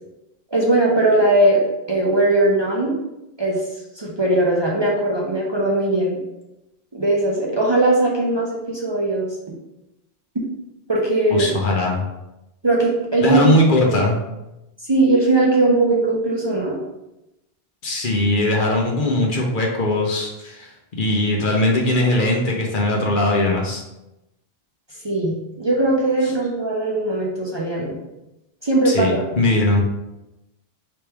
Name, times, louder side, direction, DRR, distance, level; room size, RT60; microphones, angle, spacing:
voice 1, 0.5-2.9 3.4-3.6 3.9-6.2 6.9-9.4 10.9-11.5 12.6-13.5 13.8-14.0 14.9-16.8 25.0-28.0 28.6-29.3, right 2 dB, 30° right, -4 dB, 0.7 m, -19 dB
voice 2, 11.3-12.0 13.2-14.2 17.8-20.7 21.0-23.8 28.8-29.8, left 1 dB, 55° left, -1 dB, 0.9 m, -19 dB
3.4 x 3.2 x 4.5 m, 0.93 s
omnidirectional pair, 1.0 m